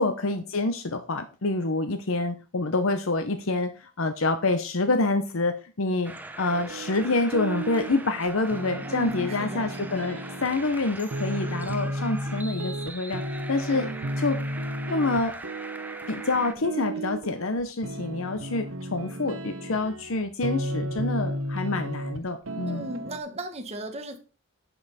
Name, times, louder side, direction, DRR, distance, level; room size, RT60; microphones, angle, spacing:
voice 1, 0.0-13.9 14.2-14.4 14.9-15.4 16.1-22.9, left 3 dB, 70° left, 0.8 m, -27 dB
sound 1, 6.0-16.5, right 2 dB, 10° right, 0.7 m, -41 dB
sound 2, 6.5-22.2 22.5-23.2, right 1 dB, 70° right, 0.8 m, -34 dB
voice 2, 8.9-9.6 13.7-13.9 22.7-24.2, right 1 dB, 30° right, 1.3 m, -36 dB
10.5 x 5.6 x 4.2 m
head